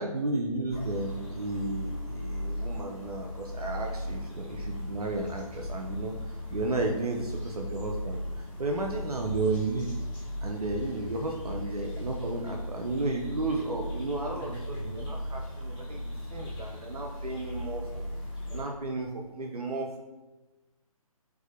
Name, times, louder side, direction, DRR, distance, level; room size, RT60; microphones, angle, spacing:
voice 1, 0.0-10.1 10.4-18.0 18.5-20.0, right 2 dB, 90° right, 1 dB, 0.4 m, -33 dB
sound 1, 0.7-18.6, left 1 dB, 40° left, 1.4 m, -37 dB
4.6 x 2.2 x 2.5 m, 1.1 s
figure-of-eight pair, 140°, 19 cm